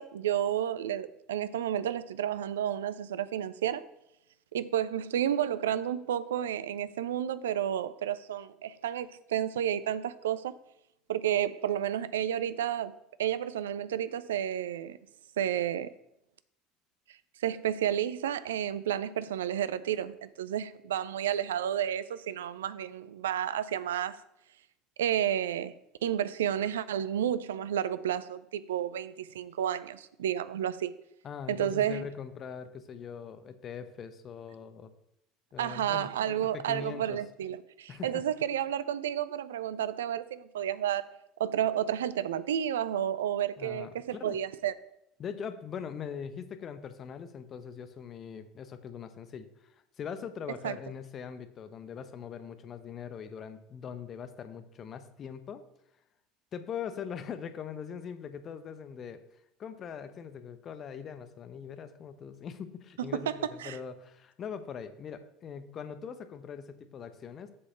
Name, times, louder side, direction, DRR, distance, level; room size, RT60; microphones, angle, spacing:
voice 1, 0.0-3.8 4.5-10.5 11.1-15.0 15.4-15.9 17.4-24.2 25.0-25.7 26.0-30.9 31.5-32.0 35.6-41.1 41.4-44.7 50.6-50.8 63.3-63.8, right 10 dB, 75° right, 0.4 m, -31 dB
voice 2, 31.2-34.9 35.5-37.2 37.9-38.3 43.6-44.4 45.2-55.6 56.5-59.2 59.6-67.5, left 7 dB, 40° left, 0.8 m, -41 dB
7.5 x 4.2 x 6.7 m
figure-of-eight pair, 65°, 0 cm